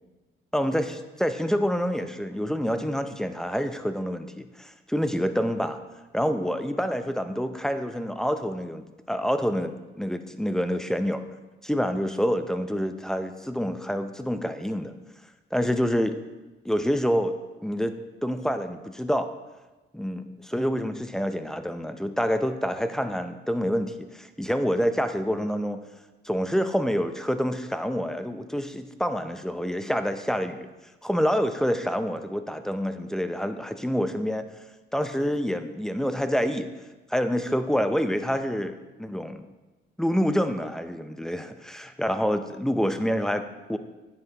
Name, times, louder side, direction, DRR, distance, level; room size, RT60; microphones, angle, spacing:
voice 1, 0.5-5.8 6.1-11.2 11.6-14.9 15.5-16.2 16.6-17.4 17.6-17.9 18.2-19.3 19.9-25.8 26.2-30.7 31.0-34.5 34.9-36.7 37.1-39.5 40.0-43.8, equal, 5° left, 9 dB, 0.6 m, -27 dB
9.5 x 7.8 x 2.9 m, 1.1 s
cardioid pair, 90°, 20 cm